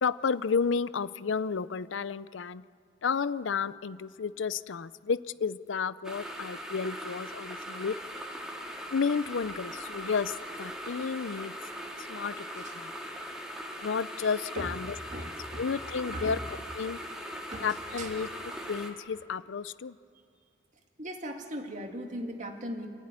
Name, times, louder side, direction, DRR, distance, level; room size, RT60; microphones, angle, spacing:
voice 1, 0.0-2.6 3.0-8.0 8.9-11.5 12.0-12.9 13.8-14.9 15.6-16.4 16.8-17.0 17.6-18.3 18.7-20.0, left 5 dB, 70° left, 17 dB, 0.5 m, -32 dB
electric kettle, 6.0-18.9, equal, 5° right, 2.1 m, -40 dB
voice 2, 15.1-15.7 16.1-16.4 17.5-17.7 18.0-18.1 21.0-22.9, right 1 dB, 40° right, 3 dB, 2.3 m, -38 dB
28.0 x 14.5 x 9.7 m, 2.4 s
head